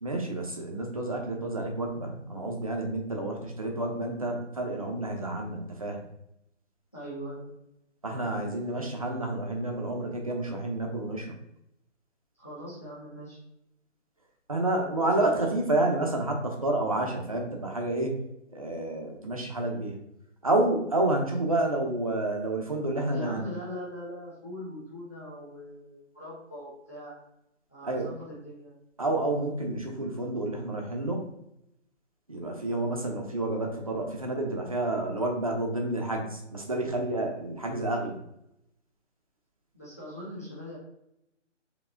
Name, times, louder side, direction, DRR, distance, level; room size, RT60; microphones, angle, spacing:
voice 1, 0.0-6.0 8.0-11.3 14.5-18.2 18.5-20.0 20.4-23.4 27.8-28.1 29.0-31.2 32.3-38.2, right 2 dB, 30° right, 1 dB, 0.7 m, -29 dB
voice 2, 6.9-7.5 12.4-13.4 15.0-15.1 23.1-27.1 27.7-28.7 39.7-40.8, equal, 15° left, -8 dB, 0.7 m, -41 dB
5.0 x 2.9 x 3.6 m, 0.83 s
hypercardioid pair, 170°, 37 cm